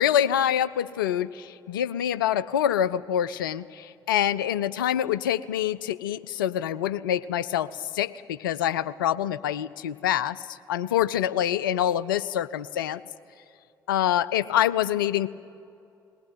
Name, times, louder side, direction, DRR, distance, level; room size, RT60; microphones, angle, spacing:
voice 1, 0.0-13.0 13.9-15.3, left 10 dB, 80° left, 16 dB, 0.5 m, -26 dB
20.5 x 18.5 x 9.0 m, 2.6 s
figure-of-eight pair, 45°, 11 cm